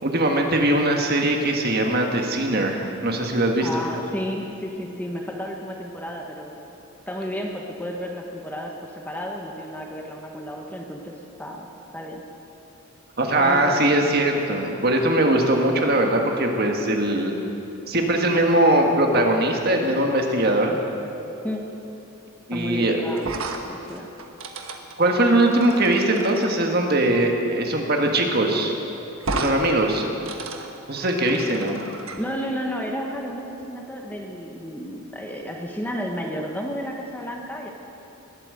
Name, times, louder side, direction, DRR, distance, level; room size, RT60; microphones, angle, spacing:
voice 1, 0.0-3.7 13.2-17.3 17.9-20.8 22.5-23.0 25.0-28.7 29.3-30.1 30.9-31.7, right 1 dB, 45° right, 2 dB, 1.7 m, -21 dB
voice 2, 3.6-6.6 7.1-12.2 13.4-14.1 21.4-21.7 22.5-24.1 32.2-37.7, equal, 10° left, 1 dB, 1.0 m, -32 dB
sound 1, 23.2-26.5 28.0-28.1 28.4-28.5 29.2-29.6 29.9-32.2, right 3 dB, 70° right, 1.3 m, -33 dB
20.5 x 8.8 x 7.9 m, 2.9 s
head